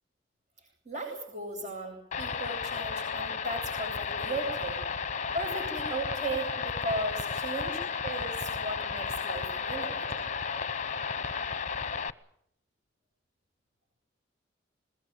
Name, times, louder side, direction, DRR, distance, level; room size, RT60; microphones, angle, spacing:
voice 1, 0.8-4.8 5.3-10.2, right 2 dB, 40° right, 1 dB, 7.9 m, -36 dB
sound 1, 2.1-12.1, left 6 dB, 40° left, 0.9 m, -33 dB
22.0 x 20.5 x 9.0 m, 0.69 s
head